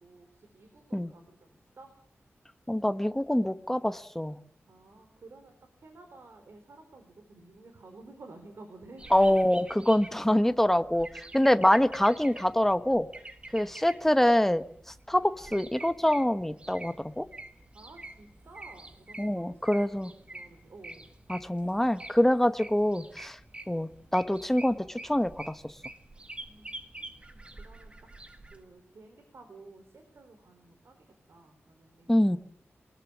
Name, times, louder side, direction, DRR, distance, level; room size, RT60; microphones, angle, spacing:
voice 1, 0.0-1.9 4.7-9.5 13.6-13.8 17.7-21.1 26.5-28.1 28.5-32.2, right 3 dB, 65° right, 6 dB, 4.2 m, -53 dB
voice 2, 2.7-4.4 9.1-13.1 13.5-17.3 19.2-20.1 21.3-23.4 23.7-25.7 32.1-32.4, left 1 dB, 5° left, 11 dB, 1.0 m, -25 dB
sound 1, 9.0-28.6, right 2 dB, 25° right, 1.9 m, -47 dB
23.5 x 20.0 x 7.3 m, 0.65 s
wide cardioid pair, 145°, 5 cm